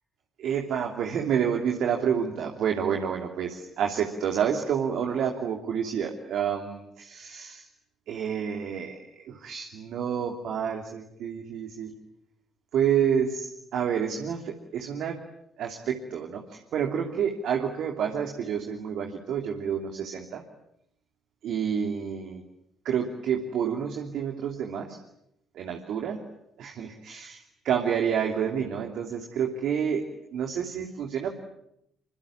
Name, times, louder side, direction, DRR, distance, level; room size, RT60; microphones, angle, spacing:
voice 1, 0.4-7.5 8.1-11.9 12.7-15.2 15.6-20.4 21.4-22.4 22.8-25.0 25.5-26.2 26.6-31.3, right 8 dB, 60° right, 3 dB, 2.8 m, -29 dB
27.0 x 25.5 x 8.7 m, 0.79 s
figure-of-eight pair, 45°, 0 cm